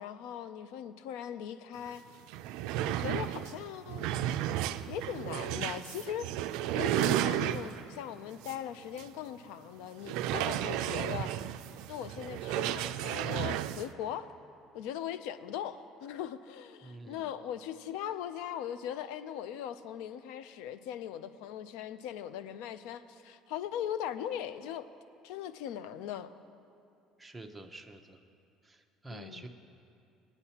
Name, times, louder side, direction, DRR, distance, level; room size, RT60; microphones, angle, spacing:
voice 1, 0.0-2.0 2.8-4.1 4.9-6.3 6.7-11.4 11.9-14.3 14.7-24.9 25.2-26.3 29.1-29.5, left 10 dB, 90° left, 13 dB, 0.4 m, -39 dB
sound 1, 1.9-2.0 2.2-7.9 8.4-8.6 9.0-9.1 10.0-13.9, right 12 dB, 80° right, 0.3 m, -33 dB
voice 2, 16.8-17.3 27.2-28.2 28.6-29.5, right 2 dB, 10° right, 4 dB, 0.6 m, -48 dB
19.0 x 8.9 x 2.8 m, 2.5 s
cardioid pair, 150°, 0 cm